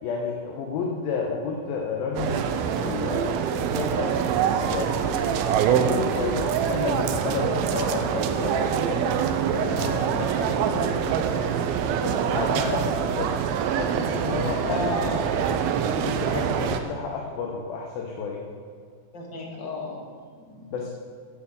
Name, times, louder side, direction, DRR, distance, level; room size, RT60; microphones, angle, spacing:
voice 1, 0.0-3.3 3.5-4.2 4.6-5.3 5.7-9.2 9.5-11.3 12.0-13.3 13.8-14.8 15.4-18.4 20.7-20.9, left 5 dB, 75° left, -1 dB, 2.8 m, -31 dB
sound 1, 2.2-16.8, right 8 dB, 85° right, 2.5 m, -25 dB
voice 2, 14.7-15.3 19.1-20.8, left 2 dB, 45° left, -1 dB, 1.6 m, -33 dB
9.9 x 8.8 x 6.9 m, 2.1 s
omnidirectional pair, 4.3 m